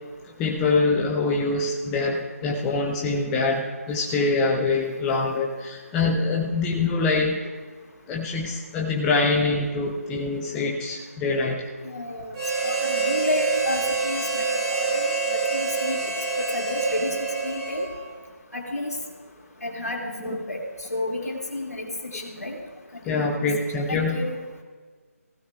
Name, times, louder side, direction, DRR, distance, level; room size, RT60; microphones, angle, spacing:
voice 1, 0.4-7.4 8.1-11.7 20.2-20.4 23.0-24.2, left 3 dB, 5° left, -1 dB, 0.4 m, -24 dB
voice 2, 11.8-12.3 12.6-15.0 15.3-16.1 16.4-17.9 18.5-18.9 19.6-20.6 20.9-22.6 22.9-23.3 23.9-24.3, left 2 dB, 85° left, -1 dB, 2.1 m, -31 dB
Harmonica, 12.3-18.1, right 5 dB, 25° right, 3.1 m, -26 dB
15.5 x 15.0 x 2.3 m, 1.5 s
figure-of-eight pair, 155°, 8 cm